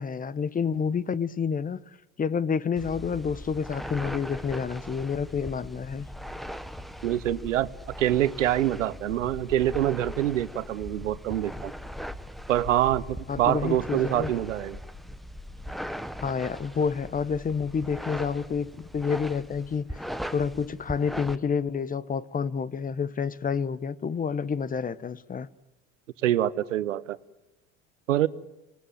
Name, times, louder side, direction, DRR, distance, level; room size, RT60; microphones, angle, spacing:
voice 1, 0.0-1.8 2.2-6.1 13.3-14.3 16.2-20.0 20.3-25.5, left 6 dB, 20° left, 0.9 m, -29 dB
sound 1, 2.8-21.4, equal, ahead, 1.1 m, -39 dB
voice 2, 7.0-7.7 8.0-11.7 12.5-14.8 26.2-27.2 28.1-28.3, right 12 dB, 90° right, 0.9 m, -25 dB
25.5 x 19.0 x 9.1 m
hypercardioid pair, 85°, 37 cm